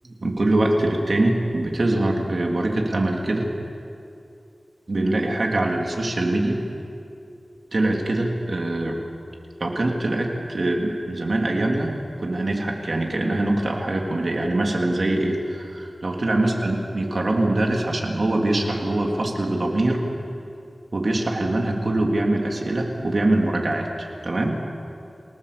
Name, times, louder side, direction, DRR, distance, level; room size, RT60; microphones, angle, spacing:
voice 1, 0.2-3.4 4.9-6.6 7.7-9.0 9.6-20.0 20.9-24.6, right 2 dB, 60° right, 0 dB, 3.4 m, -23 dB
29.5 x 18.5 x 7.0 m, 2.6 s
wide cardioid pair, 75°, 0 cm